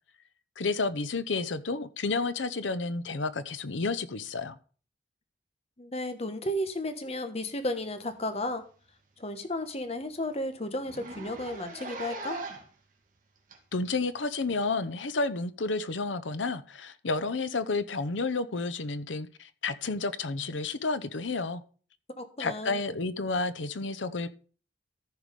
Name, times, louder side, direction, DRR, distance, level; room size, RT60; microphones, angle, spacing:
voice 1, 0.6-4.6 13.7-21.6 22.4-24.3, left 3 dB, 90° left, 0.8 m, -31 dB
voice 2, 5.8-8.6 9.2-12.4 22.2-22.8, left 1 dB, 35° left, 1.2 m, -33 dB
Zipper (clothing), 8.2-8.4 8.7-8.8 9.2-9.3 9.6-9.7 10.0-10.1 10.8-12.8 13.5-13.6 14.6-14.7, right 2 dB, 45° right, 2.1 m, -40 dB
14.0 x 4.9 x 5.2 m
head